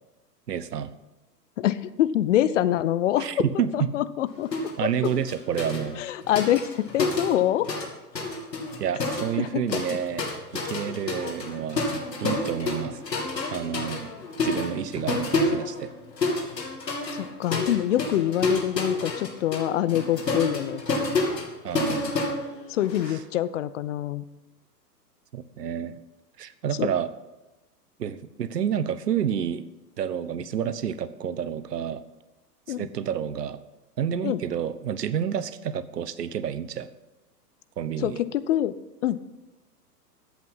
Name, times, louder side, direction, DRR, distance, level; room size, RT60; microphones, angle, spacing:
voice 1, 0.5-0.9 3.2-3.9 4.8-6.0 8.8-10.3 10.5-11.8 12.2-13.0 13.5-14.1 14.4-15.9 21.6-22.1 23.1-23.2 25.3-26.0 26.4-27.1 28.0-29.6 30.0-32.0 32.8-33.6 34.0-36.9 37.8-38.2, right 8 dB, 75° right, 14 dB, 1.0 m, -29 dB
voice 2, 1.6-3.3 3.7-5.1 6.0-7.7 9.4-9.8 17.1-20.8 22.7-24.3 26.8-26.9 32.7-32.9 34.2-34.4 38.0-38.7 39.0-39.2, left 12 dB, 50° left, 15 dB, 0.7 m, -25 dB
sound 1, 4.5-4.8 5.0-7.9 8.1-23.1, left 2 dB, 80° left, 2.8 m, -29 dB
14.0 x 8.4 x 5.6 m, 1.1 s
figure-of-eight pair, 110°, 49 cm